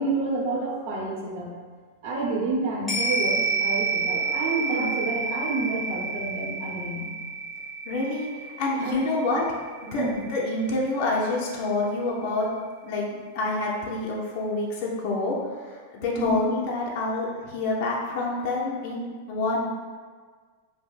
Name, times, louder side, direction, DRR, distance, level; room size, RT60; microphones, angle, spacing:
voice 1, 0.0-1.5 2.0-7.1 8.8-9.1 10.0-10.3 16.2-16.4, right 2 dB, 55° right, -2 dB, 0.8 m, -29 dB
sound 1, 2.9-11.4 11.8-11.9, right 4 dB, 5° left, 1.3 m, -30 dB
voice 2, 7.9-8.3 8.6-9.4 9.9-12.5 12.8-15.4 15.6-19.7, left 2 dB, 50° left, -4 dB, 0.6 m, -27 dB
5.2 x 2.1 x 2.4 m, 1.5 s
supercardioid pair, 140°, 0 cm